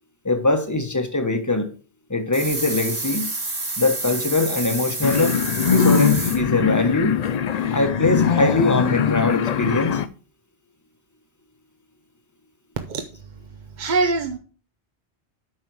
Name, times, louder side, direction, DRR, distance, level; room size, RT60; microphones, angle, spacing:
voice 1, 0.2-1.7 2.1-3.3 3.8-5.4 5.7-7.2 7.7-10.0, left 2 dB, 15° left, 1.1 m, -22 dB
sound 1, 2.3-6.4, right 2 dB, 65° right, 3.7 m, -29 dB
sound 2, 5.0-10.1, left 7 dB, 50° left, 0.5 m, -21 dB
voice 2, 12.8-14.4, right 3 dB, 45° right, 0.9 m, -25 dB
9.1 x 5.5 x 4.6 m
omnidirectional pair, 1.1 m